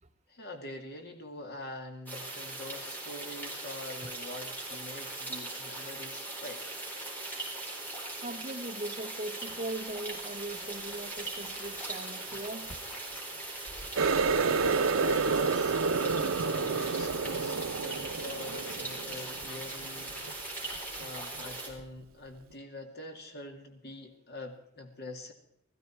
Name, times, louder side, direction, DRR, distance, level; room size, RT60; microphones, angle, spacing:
voice 1, 0.3-6.7 14.9-20.1 20.6-25.3, left 2 dB, 55° left, 4 dB, 2.4 m, -44 dB
sound 1, 2.1-21.7, right 2 dB, 10° left, 4.4 m, -40 dB
voice 2, 8.2-12.8, right 2 dB, 35° right, 8 dB, 1.0 m, -39 dB
sound 2, 9.7-15.1 15.4-21.7, left 2 dB, 75° left, 4.0 m, -54 dB
Water tap faucet, 14.0-19.4 19.8-20.3 20.8-21.0 21.8-21.9, right 4 dB, 90° right, 0.6 m, -29 dB
18.0 x 14.5 x 4.5 m, 0.76 s
head